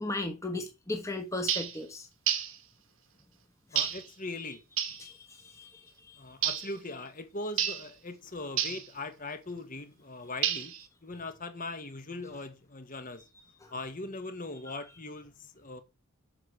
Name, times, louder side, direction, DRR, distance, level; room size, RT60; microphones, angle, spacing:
voice 1, 0.0-2.1 5.0-6.2 13.6-13.7 14.7-14.8, left 2 dB, 15° left, 1.3 m, -37 dB
sound 1, 1.5-1.8 2.3-2.6 3.8-4.1 4.8-5.0 6.4-6.7 7.6-7.9 8.6-8.9 10.4-10.8, right 10 dB, 60° right, 1.3 m, -30 dB
voice 2, 3.7-4.6 6.2-10.7 11.0-13.3 13.7-15.8, left 2 dB, 40° left, 1.6 m, -40 dB
8.6 x 6.1 x 6.4 m
head